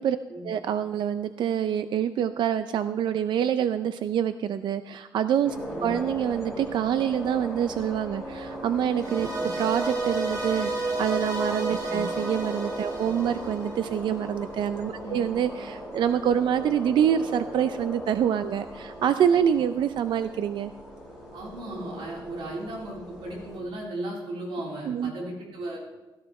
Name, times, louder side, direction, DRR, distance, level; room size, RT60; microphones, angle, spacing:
voice 1, 0.4-5.6 5.8-9.3 9.6-20.7 24.9-25.1, right 9 dB, 65° right, 11 dB, 0.5 m, -26 dB
sound 1, 5.4-23.6, equal, 5° right, 5.2 m, -38 dB
sound 2, 9.0-14.2, right 2 dB, 45° right, 3.7 m, -31 dB
voice 2, 21.3-25.8, right 1 dB, 85° right, -3 dB, 3.8 m, -36 dB
17.0 x 13.0 x 3.2 m, 1.1 s
cardioid pair, 135°, 9 cm